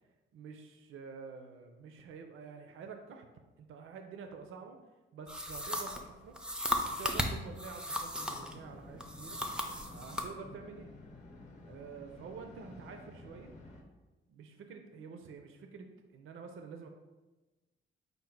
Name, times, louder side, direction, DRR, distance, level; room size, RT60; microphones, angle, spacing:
voice 1, 0.3-3.3 3.6-4.8 5.1-6.3 7.0-9.4 9.9-10.9 11.7-13.5 14.3-16.9, right 5 dB, 75° right, 5 dB, 0.5 m, -48 dB
sound 1, 5.3-8.6 9.0-10.3, left 1 dB, 5° right, 0.4 m, -36 dB
sound 2, 8.2-13.8, left 2 dB, 35° left, 0.7 m, -52 dB
5.1 x 2.1 x 4.4 m, 1.2 s
cardioid pair, 130°, 21 cm